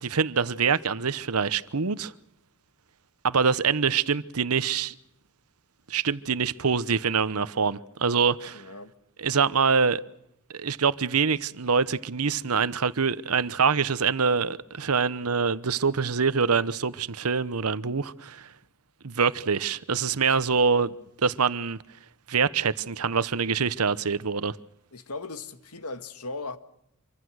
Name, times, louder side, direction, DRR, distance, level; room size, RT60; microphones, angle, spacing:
voice 1, 0.0-2.1 3.2-4.9 5.9-8.6 9.2-10.0 10.5-18.5 19.0-20.9 21.2-21.8 22.3-24.6, right 5 dB, 75° right, 1.0 m, -25 dB
voice 2, 8.5-8.9 20.3-20.4 24.9-26.6, left 3 dB, 90° left, 1.9 m, -37 dB
26.0 x 24.5 x 6.4 m
head